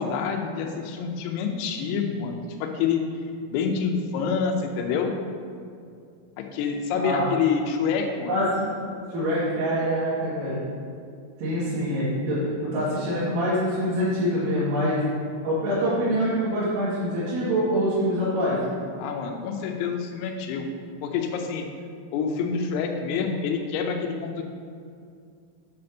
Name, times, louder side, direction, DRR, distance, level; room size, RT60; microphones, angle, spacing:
voice 1, 0.0-3.0 3.5-5.1 6.4-8.4 19.0-20.7 21.0-21.7 22.1-24.4, left 6 dB, 90° left, 3 dB, 3.4 m, -27 dB
voice 2, 6.9-7.3 8.3-8.6 9.1-10.6 11.4-15.0 15.4-18.6, equal, 70° right, -13 dB, 4.3 m, -25 dB
9.1 x 4.3 x 6.4 m, 2.3 s
omnidirectional pair, 5.9 m